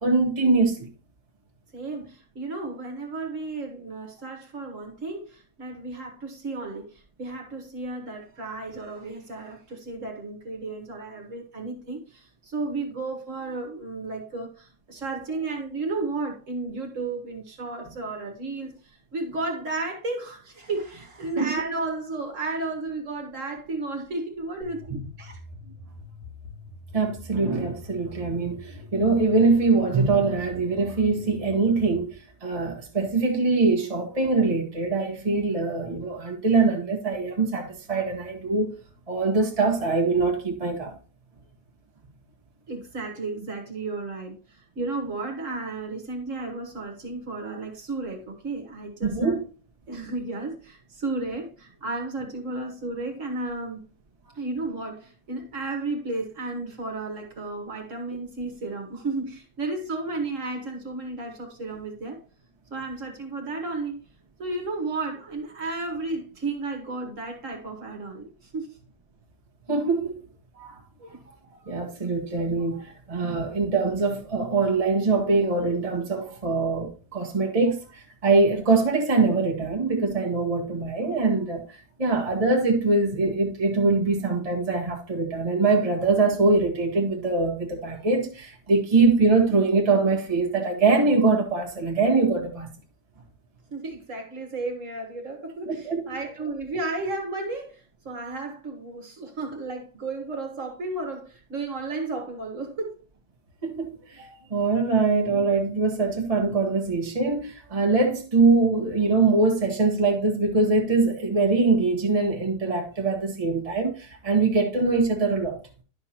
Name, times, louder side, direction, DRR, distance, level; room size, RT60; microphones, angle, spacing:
voice 1, 0.0-0.9 21.4-21.5 24.9-25.0 26.9-38.7 39.1-40.9 49.0-49.4 69.7-70.2 70.5-70.8 71.7-92.7 95.6-96.0 103.6-115.6, right 3 dB, 25° right, 1.4 m, -23 dB
voice 2, 1.7-25.4 42.7-49.4 49.9-53.9 54.4-62.2 62.7-64.0 64.4-68.8 71.0-71.2 93.7-102.9, right 3 dB, 55° right, 1.8 m, -33 dB
sound 1, 24.6-32.0, left 2 dB, 80° left, 3.6 m, -44 dB
11.0 x 5.8 x 2.9 m
omnidirectional pair, 1.6 m